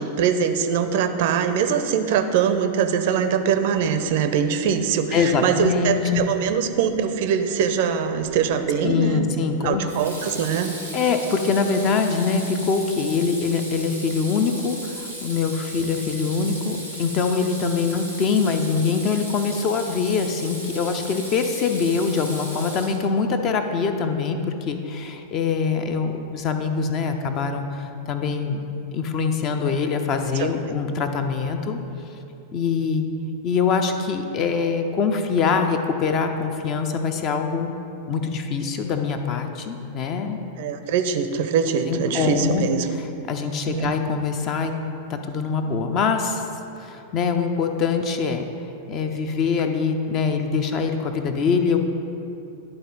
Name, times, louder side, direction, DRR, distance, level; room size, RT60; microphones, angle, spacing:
voice 1, 0.0-9.3 9.6-10.7 40.6-42.9 43.7-43.9, right 7 dB, 50° right, 8 dB, 0.5 m, -22 dB
voice 2, 5.1-6.2 8.8-9.8 10.9-28.6 28.9-31.8 32.5-33.1 33.4-37.7 38.1-40.4 41.9-42.6 43.3-44.7 45.1-46.5 46.8-48.4 48.9-51.8, left 5 dB, 35° left, 6 dB, 0.5 m, -24 dB
Water tap faucet / Sink (filling or washing), 8.2-8.6 9.9-23.3, right 1 dB, 85° left, 1.4 m, -36 dB
11.0 x 3.9 x 4.0 m, 2.8 s
figure-of-eight pair, 90°, 0 cm